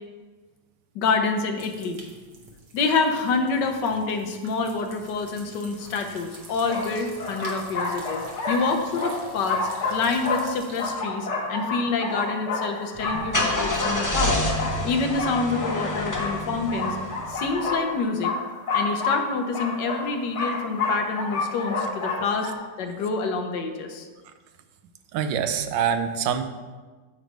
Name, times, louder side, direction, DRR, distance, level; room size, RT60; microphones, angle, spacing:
voice 1, 0.9-2.0 2.7-14.4 14.8-17.0 17.3-18.3 18.7-22.5 22.8-24.1, left 4 dB, 75° left, 5 dB, 1.4 m, -27 dB
sound 1, 1.5-10.9, right 2 dB, 65° right, 1.7 m, -47 dB
sound 2, 5.9-6.0 6.7-22.5, left 3 dB, 45° left, 1.1 m, -30 dB
Car / Engine starting, 12.9-17.6, left 1 dB, 30° left, 0.3 m, -28 dB
voice 2, 25.1-26.4, right 8 dB, 90° right, 9 dB, 1.3 m, -25 dB
9.1 x 3.2 x 6.4 m, 1.3 s
omnidirectional pair, 2.0 m